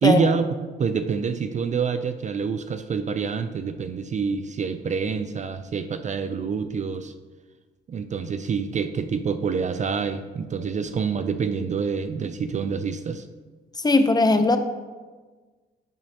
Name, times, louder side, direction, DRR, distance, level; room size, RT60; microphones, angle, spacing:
voice 1, 0.0-0.5 0.8-7.1 7.9-13.3, right 5 dB, 35° right, 10 dB, 0.4 m, -26 dB
voice 2, 13.7-14.6, left 2 dB, 20° left, 8 dB, 0.6 m, -19 dB
9.0 x 6.1 x 2.8 m, 1.4 s
cardioid pair, 90°, 20 cm